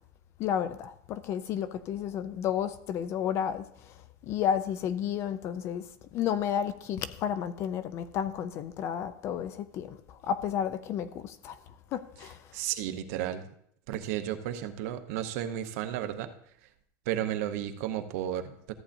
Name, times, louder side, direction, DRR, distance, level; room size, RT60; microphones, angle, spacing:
voice 1, 0.4-3.9 4.2-5.8 6.1-11.6 11.9-12.4, left 9 dB, 25° left, 0.3 m, -32 dB
voice 2, 12.5-13.5 13.9-16.3 17.1-18.7, right 11 dB, 50° right, 0.8 m, -33 dB
14.0 x 8.5 x 2.6 m
supercardioid pair, 180°, 10 cm